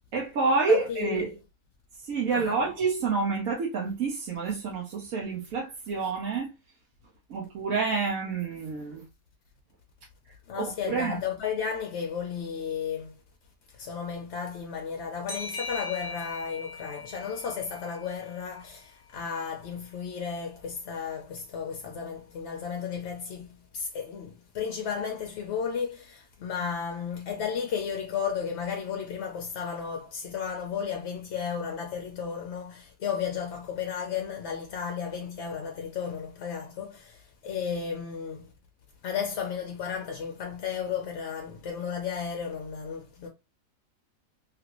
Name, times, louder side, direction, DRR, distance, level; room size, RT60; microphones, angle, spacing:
voice 1, 0.1-1.3 2.0-6.5 7.3-9.0 10.6-11.2, right 4 dB, 70° right, 1.1 m, -28 dB
voice 2, 0.7-1.4 2.3-2.6 10.5-13.2 13.7-38.5 39.0-43.3, left 7 dB, 65° left, 0.7 m, -34 dB
sound 1, 15.3-18.6, left 3 dB, 15° left, 1.0 m, -40 dB
2.9 x 2.5 x 2.8 m
omnidirectional pair, 1.5 m